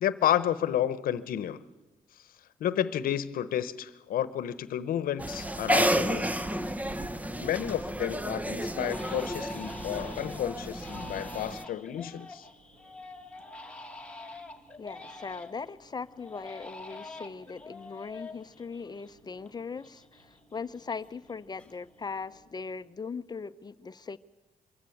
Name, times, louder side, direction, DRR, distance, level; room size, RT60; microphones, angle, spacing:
voice 1, 0.0-1.6 2.6-6.3 7.4-12.5, left 11 dB, 80° left, 16 dB, 0.9 m, -31 dB
sound 1, 5.2-11.6, equal, 10° right, 0.8 m, -31 dB
Crying sobbing, 7.5-7.9 8.2-8.3 8.8-15.7 16.2-19.5 19.8-21.3 21.6-22.1, left 2 dB, 10° left, 1.8 m, -46 dB
sound 2, 9.8-22.8, right 2 dB, 75° right, 6.9 m, -63 dB
voice 2, 14.8-24.2, left 5 dB, 30° left, 14 dB, 0.7 m, -39 dB
23.5 x 14.0 x 8.6 m, 1.1 s
cardioid pair, 90°, 15 cm